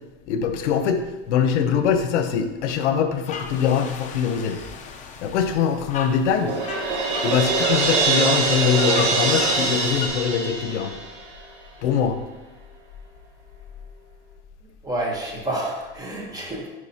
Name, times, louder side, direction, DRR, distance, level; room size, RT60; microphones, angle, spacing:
voice 1, 0.3-4.6 5.2-6.6 7.2-11.0 11.8-12.2, left 7 dB, 80° left, 7 dB, 0.9 m, -23 dB
sound 1, 3.2-10.1, left 5 dB, 20° left, 0.6 m, -35 dB
Crash cymbal, 6.5-11.4, right 4 dB, 80° right, 1.9 m, -23 dB
voice 2, 14.8-16.7, right 1 dB, 10° right, -1 dB, 1.1 m, -29 dB
9.5 x 5.0 x 2.8 m, 1.1 s
supercardioid pair, 150°, 35 cm